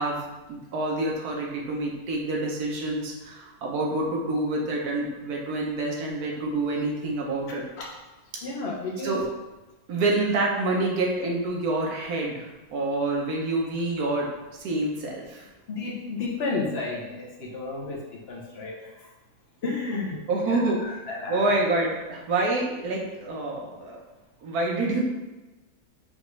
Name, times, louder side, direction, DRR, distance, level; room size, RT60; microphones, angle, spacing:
voice 1, 0.0-7.6 9.0-9.2 9.9-14.3 14.6-15.5 20.3-20.8 21.3-24.0 24.4-25.0, right 2 dB, 75° right, -1 dB, 1.3 m, -27 dB
voice 2, 7.5-7.9 8.4-9.2 10.1-10.2 15.7-19.1 19.6-21.5, left 3 dB, 50° left, -2 dB, 0.9 m, -32 dB
5.0 x 2.4 x 3.2 m, 1.1 s
omnidirectional pair, 1.6 m